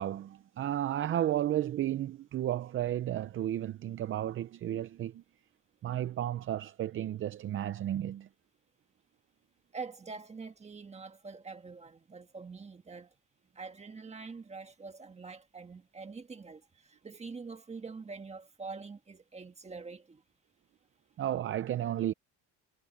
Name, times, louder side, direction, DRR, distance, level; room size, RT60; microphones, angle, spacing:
voice 1, 0.0-5.2 5.8-8.3 21.2-22.1, right 12 dB, 40° right, 0.5 m, -33 dB
voice 2, 9.7-13.1 13.5-20.2, right 4 dB, 20° right, 1.6 m, -45 dB
cardioid pair, 150°, 33 cm